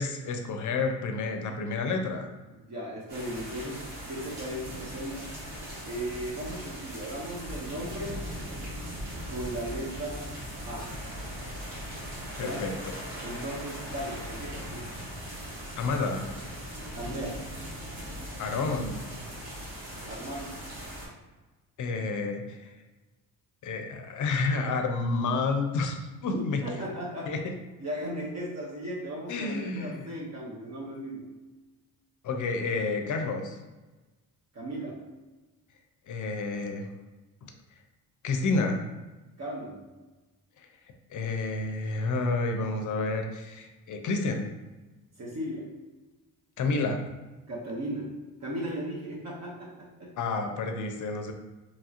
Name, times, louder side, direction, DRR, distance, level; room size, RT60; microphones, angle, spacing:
voice 1, 0.0-2.3 12.4-12.7 15.8-16.3 18.4-19.0 21.8-22.7 23.6-26.6 27.3-27.4 29.3-30.1 32.2-33.6 36.1-36.9 37.4-37.5 38.2-38.8 40.6-40.7 41.1-44.5 46.6-47.0 50.2-51.3, left 3 dB, 55° left, 4 dB, 0.5 m, -30 dB
voice 2, 2.5-5.3 5.9-8.2 9.3-10.3 10.6-10.9 12.2-12.6 13.2-14.9 17.0-17.4 20.1-20.5 26.3-27.3 27.8-31.3 34.5-35.0 39.4-39.8 45.2-45.7 47.5-48.2 48.4-50.1, right 1 dB, 45° right, -4 dB, 0.9 m, -36 dB
sound 1, 3.1-21.1, equal, 85° right, 1.3 m, -39 dB
3.0 x 2.7 x 2.4 m, 1.2 s
supercardioid pair, 70°, 37 cm